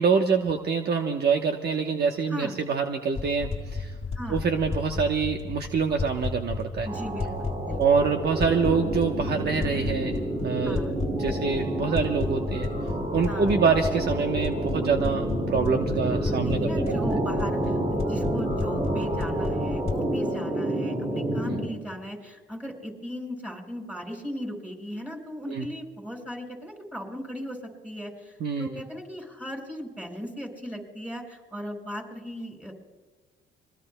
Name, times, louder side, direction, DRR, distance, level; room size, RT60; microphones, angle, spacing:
voice 1, 0.0-3.9 4.3-6.9 7.8-10.8 11.2-12.7 13.1-16.7 25.5-25.7 28.4-28.7, right 5 dB, 55° right, 4 dB, 1.0 m, -25 dB
voice 2, 2.3-2.6 4.1-4.5 6.8-7.8 10.6-11.0 13.3-13.6 16.0-32.7, equal, 5° right, 1 dB, 5.6 m, -37 dB
sound 1, 3.1-20.0, left 3 dB, 30° left, 1.7 m, -33 dB
sound 2, 6.8-21.7, right 1 dB, 35° right, 3.9 m, -29 dB
26.5 x 22.0 x 2.2 m, 1.4 s
cardioid pair, 90°, 20 cm